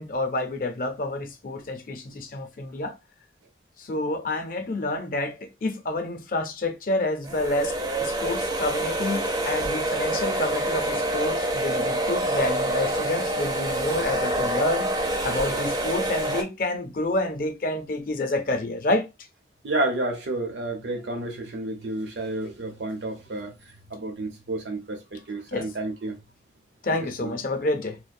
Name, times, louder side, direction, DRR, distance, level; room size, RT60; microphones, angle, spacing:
voice 1, 0.0-2.9 3.8-15.0 15.2-19.1 25.5-25.7 26.8-28.0, left 2 dB, 50° left, 0.5 m, -28 dB
sound 1, 7.2-16.4, right 1 dB, 25° right, 0.4 m, -26 dB
voice 2, 19.6-23.5 23.9-26.2 26.9-27.3, right 2 dB, 85° right, 0.8 m, -30 dB
2.3 x 2.1 x 2.5 m
head